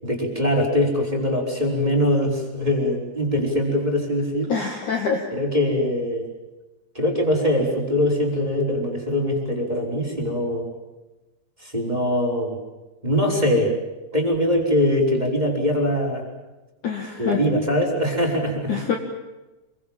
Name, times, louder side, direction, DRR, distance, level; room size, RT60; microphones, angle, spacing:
voice 1, 0.0-4.5 5.3-6.3 6.9-10.7 11.6-12.6 13.0-13.8 14.1-16.2 17.2-18.8, left 1 dB, 10° right, 0 dB, 4.8 m, -22 dB
voice 2, 4.5-5.3 16.8-17.4 18.7-19.0, left 6 dB, 50° left, 2 dB, 2.9 m, -25 dB
27.5 x 24.0 x 7.5 m, 1.1 s
omnidirectional pair, 5.2 m